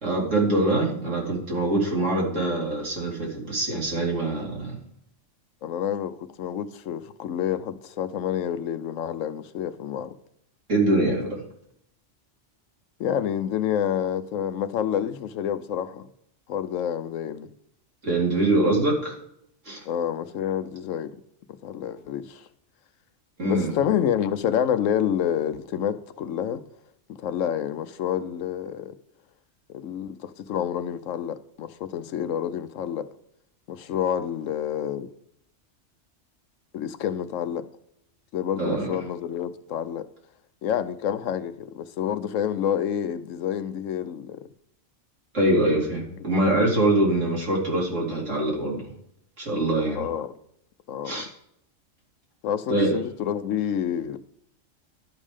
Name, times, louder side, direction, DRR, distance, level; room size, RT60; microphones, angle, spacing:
voice 1, 0.0-4.7 10.7-11.4 18.0-19.2 19.6-19.8 23.4-23.7 38.6-38.9 45.3-48.9 49.4-50.0 51.0-51.3 52.7-52.9, right 1 dB, 80° right, 3.1 m, -24 dB
voice 2, 5.6-10.1 13.0-16.1 16.5-17.5 19.9-21.1 21.6-22.5 23.4-26.6 27.1-28.9 29.7-33.1 33.7-35.1 36.7-37.6 38.3-40.0 40.6-44.4 46.3-46.4 49.9-50.3 50.9-51.2 52.4-54.2, left 9 dB, 90° left, 1.0 m, -28 dB
11.5 x 5.4 x 4.9 m
omnidirectional pair, 1.3 m